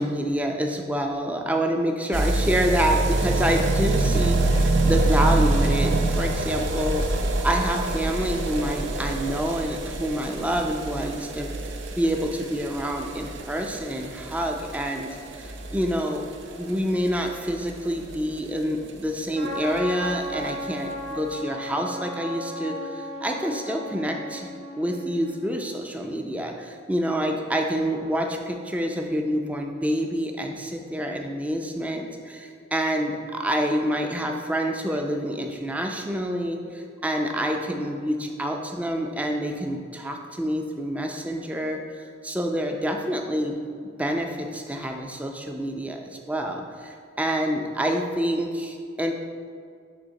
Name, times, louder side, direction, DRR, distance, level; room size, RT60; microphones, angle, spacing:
voice 1, 0.0-7.1 7.4-11.5 11.9-16.3 16.6-24.5 24.8-43.6 44.0-49.1, equal, 5° right, 2 dB, 0.5 m, -27 dB
sound 1, 2.1-18.9 19.2-19.3 19.5-19.6 19.8-19.9 20.1-20.2 20.9-21.0, right 2 dB, 70° right, 0.6 m, -26 dB
Trumpet, 19.3-25.5, equal, 40° right, 1.0 m, -35 dB
10.0 x 3.5 x 4.0 m, 2.1 s
head